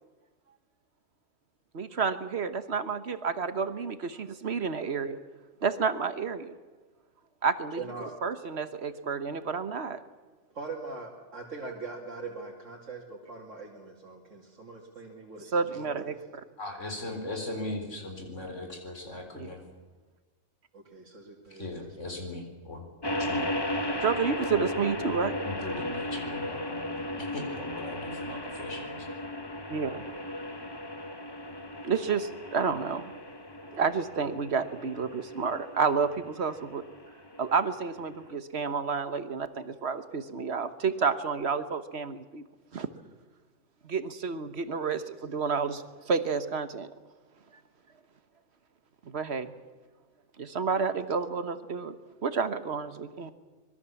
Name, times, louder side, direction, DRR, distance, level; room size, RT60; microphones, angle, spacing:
voice 1, 1.7-5.2 5.6-6.5 7.4-7.8 8.2-10.0 15.5-16.2 19.3-19.5 24.0-25.3 29.7-30.0 31.8-33.1 33.7-36.8 37.4-42.4 42.7-42.9 43.8-46.9 49.1-49.5 50.4-52.0 52.2-53.3, right 5 dB, 55° right, 11 dB, 1.5 m, -30 dB
voice 2, 7.8-8.1 10.5-16.2 20.7-22.2, right 3 dB, 75° right, -3 dB, 3.0 m, -42 dB
voice 3, 16.6-19.6 21.5-22.9 23.2-23.5 25.4-29.1, left 2 dB, 70° left, 3 dB, 4.6 m, -39 dB
sound 1, 23.0-38.3, left 1 dB, 20° left, 1.2 m, -36 dB
25.0 x 21.5 x 7.2 m, 1.3 s
omnidirectional pair, 1.3 m